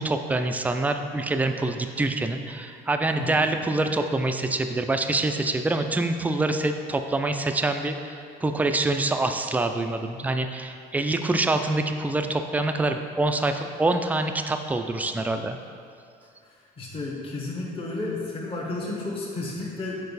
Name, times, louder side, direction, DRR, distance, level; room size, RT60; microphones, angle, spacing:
voice 1, 0.0-15.6, right 2 dB, 10° right, 6 dB, 0.3 m, -25 dB
voice 2, 16.4-20.0, left 2 dB, 35° left, -4 dB, 1.1 m, -32 dB
6.6 x 4.6 x 4.0 m, 2.3 s
cardioid pair, 110°, 17 cm